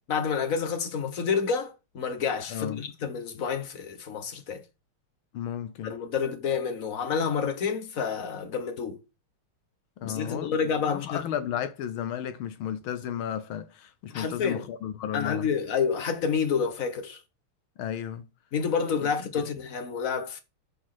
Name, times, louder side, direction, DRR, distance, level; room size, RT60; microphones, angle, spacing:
voice 1, 0.1-4.6 5.8-9.0 10.0-11.3 14.1-14.7 15.1-17.2 18.5-20.4, left 6 dB, 45° left, 1.3 m, -29 dB
voice 2, 2.5-2.8 5.3-5.9 10.0-10.6 10.9-15.5 17.8-18.3 19.2-19.3, left 9 dB, 75° left, 1.5 m, -33 dB
7.5 x 4.4 x 6.0 m
omnidirectional pair, 2.4 m